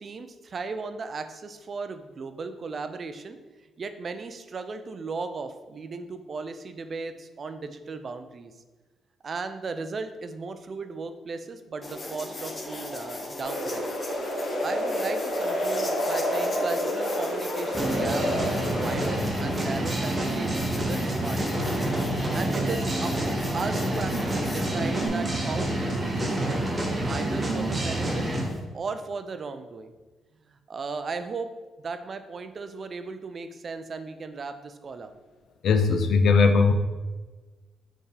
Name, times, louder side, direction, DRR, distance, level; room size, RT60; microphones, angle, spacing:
voice 1, 0.0-3.4 3.8-8.5 9.2-13.9 14.6-21.8 22.3-26.6 27.1-28.3 28.7-29.9 30.5-31.5 31.8-35.1, right 4 dB, 45° right, 9 dB, 0.4 m, -36 dB
sound 1, 11.8-25.1, left 2 dB, 30° left, 0.7 m, -38 dB
sound 2, 13.4-19.2, equal, 90° left, 1.1 m, -29 dB
sound 3, 17.7-28.5, right 1 dB, 25° right, 0.9 m, -28 dB
voice 2, 35.6-36.7, left 4 dB, 65° left, 7 dB, 0.5 m, -19 dB
4.5 x 3.5 x 3.3 m, 1.3 s
cardioid pair, 90°, 0 cm